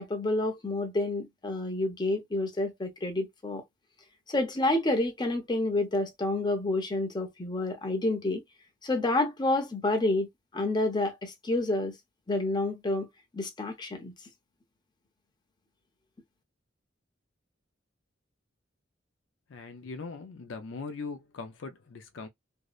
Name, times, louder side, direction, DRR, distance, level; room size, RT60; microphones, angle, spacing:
voice 1, 0.0-3.6 4.3-8.4 8.8-10.3 10.5-11.9 12.3-13.1 13.3-14.1, left 2 dB, 25° left, 0.6 m, -29 dB
voice 2, 19.5-22.3, left 4 dB, 70° left, 0.4 m, -40 dB
2.6 x 2.0 x 2.4 m
head